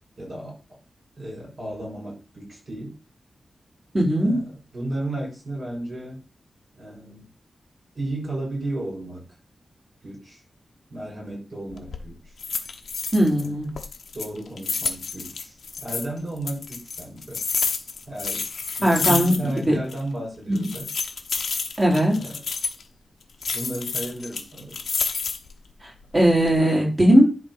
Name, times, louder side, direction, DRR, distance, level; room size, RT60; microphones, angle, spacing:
voice 1, 0.2-0.6 1.2-2.9 4.2-6.2 6.7-7.3 7.9-9.2 10.0-10.4 10.9-12.2 13.4-13.6 14.1-17.4 18.1-18.5 18.8-20.9 22.1-22.4 23.5-24.8, right 1 dB, 40° right, -2 dB, 5.7 m, -33 dB
voice 2, 3.9-4.4 13.1-13.7 18.8-19.4 19.7-19.8 20.5-20.7 21.8-22.2 26.1-27.2, equal, 20° right, -3 dB, 4.0 m, -18 dB
sound 1, 11.7-12.0 12.4-13.5 13.7-16.1 16.5-19.6 19.9-20.0 20.5-22.8 23.4-25.5 26.0-26.5, left 5 dB, 80° left, 1.2 m, -29 dB
11.0 x 3.8 x 5.6 m, 0.33 s
wide cardioid pair, 155°, 0 cm